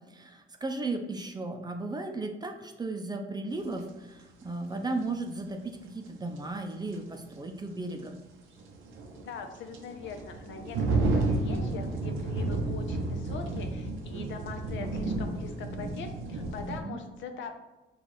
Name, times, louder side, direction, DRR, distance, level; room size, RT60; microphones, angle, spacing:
voice 1, 0.1-8.2 16.7-17.0, right 2 dB, 20° right, 4 dB, 0.5 m, -35 dB
sound 1, 3.8-3.9 6.4-6.5 6.9-7.0 8.6-16.8, right 2 dB, 90° right, 0.7 m, -31 dB
voice 2, 9.2-17.5, left 5 dB, 70° left, 5 dB, 0.6 m, -42 dB
4.7 x 2.4 x 4.1 m, 1.1 s
cardioid pair, 90°, 20 cm